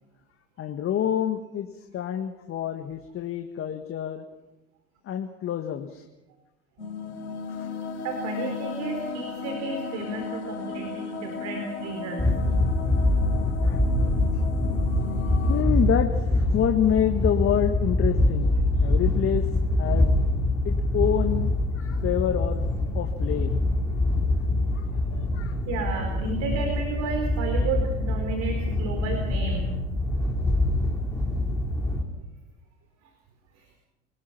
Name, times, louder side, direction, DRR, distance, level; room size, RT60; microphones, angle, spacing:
voice 1, 0.6-1.7 1.9-4.2 5.1-6.0 7.6-7.7 13.6-13.8 15.5-19.5 19.8-20.2 20.7-22.7 22.9-23.6 24.6-25.5, left 10 dB, 40° left, 6 dB, 1.7 m, -27 dB
sound 1, 6.8-15.6, left 4 dB, 75° left, 4.7 m, -35 dB
voice 2, 8.0-12.3 25.7-29.8 33.6-33.7, right 4 dB, 55° right, 4 dB, 4.2 m, -32 dB
sound 2, 12.2-32.0, left 1 dB, 10° left, 4.1 m, -24 dB
25.5 x 20.0 x 6.0 m, 1.0 s
hypercardioid pair, 70°, 33 cm